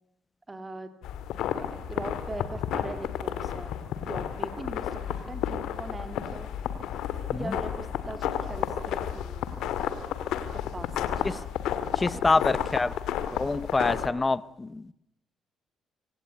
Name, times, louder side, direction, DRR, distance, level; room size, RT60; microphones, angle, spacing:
voice 1, 0.5-0.9 1.5-3.7 4.0-6.5 7.3-9.8 10.5-11.2 12.1-12.2, right 2 dB, 20° right, 2.5 m, -41 dB
sound 1, 1.0-14.1, left 9 dB, 85° left, 2.1 m, -32 dB
voice 2, 12.0-12.9 13.3-14.9, left 3 dB, 25° left, 0.9 m, -26 dB
26.0 x 17.5 x 9.5 m
cardioid pair, 90°, 0 cm